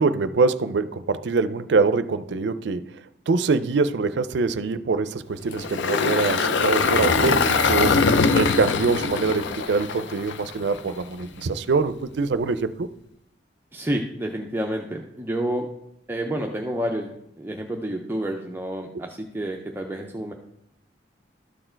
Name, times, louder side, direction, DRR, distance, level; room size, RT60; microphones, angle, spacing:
voice 1, 0.0-2.9 3.3-8.0 8.3-12.9, right 4 dB, 70° right, 13 dB, 0.4 m, -24 dB
Engine, 5.5-10.8, left 4 dB, 80° left, 0.5 m, -22 dB
voice 2, 13.7-15.7 16.1-17.1 17.4-20.3, right 1 dB, 10° right, 2 dB, 0.5 m, -29 dB
12.5 x 4.4 x 4.4 m, 0.78 s
head